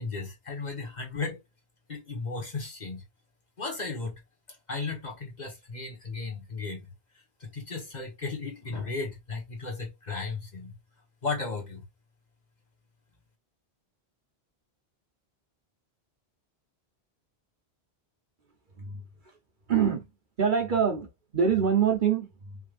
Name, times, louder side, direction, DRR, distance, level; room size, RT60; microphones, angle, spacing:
voice 1, 0.0-1.4 1.9-3.0 3.6-4.2 4.7-6.9 7.4-10.7 11.2-11.8, left 4 dB, 40° left, 1.6 m, -35 dB
voice 2, 19.7-20.1 20.4-22.6, right 7 dB, 50° right, 1.1 m, -25 dB
5.4 x 3.2 x 2.5 m
omnidirectional pair, 1.1 m